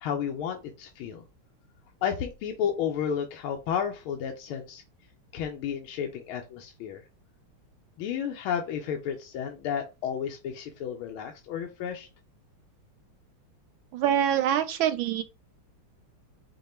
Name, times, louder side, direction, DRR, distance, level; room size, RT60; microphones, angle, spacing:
voice 1, 0.0-1.2 2.0-4.8 5.3-7.0 8.0-12.1, left 8 dB, 75° left, 1.5 m, -32 dB
voice 2, 13.9-15.2, right 10 dB, 75° right, 1.2 m, -25 dB
5.3 x 2.2 x 4.2 m
omnidirectional pair, 2.4 m